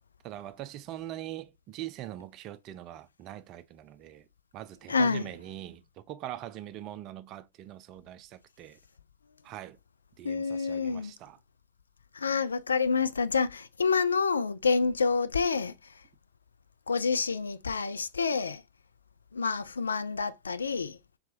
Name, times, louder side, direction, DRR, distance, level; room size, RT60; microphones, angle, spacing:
voice 1, 0.2-4.3 4.5-8.8 9.4-9.8 10.2-11.4, right 13 dB, 35° right, 0.4 m, -42 dB
voice 2, 4.9-5.3 10.2-11.1 12.1-16.0 16.9-18.6 19.3-21.0, left 5 dB, 75° left, 0.3 m, -28 dB
4.2 x 3.4 x 2.5 m
figure-of-eight pair, 90°, 0 cm